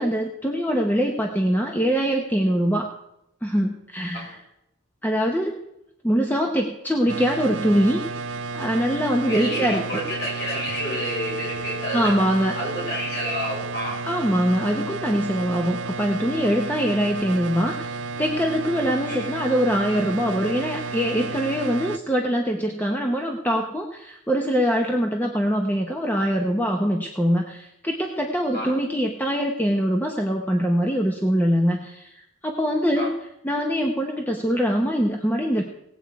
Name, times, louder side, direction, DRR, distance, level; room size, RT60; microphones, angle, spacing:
voice 1, 0.0-2.9 3.4-4.4 5.0-5.6 6.0-8.0 8.5-10.0 11.9-12.6 14.0-33.1 33.4-35.6, equal, 10° left, 2 dB, 0.8 m, -23 dB
sound 1, 7.1-22.0, right 4 dB, 55° right, 0.5 m, -32 dB
voice 2, 9.2-12.1 12.5-14.0 19.1-19.2 28.5-28.7 33.0-33.1, equal, 50° left, -5 dB, 6.4 m, -29 dB
18.5 x 8.0 x 4.7 m, 0.82 s
head